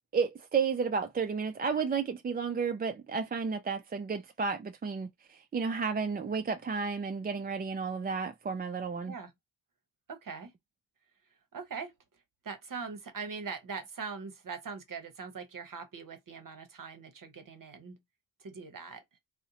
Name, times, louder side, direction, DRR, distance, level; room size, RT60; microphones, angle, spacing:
voice 1, 0.1-9.1, right 5 dB, 25° right, 0.3 m, -32 dB
voice 2, 10.1-10.5 11.5-11.9 12.4-18.0 18.4-19.0, right 5 dB, 45° right, 0.8 m, -41 dB
2.6 x 2.1 x 2.7 m
supercardioid pair, 45°, 44 cm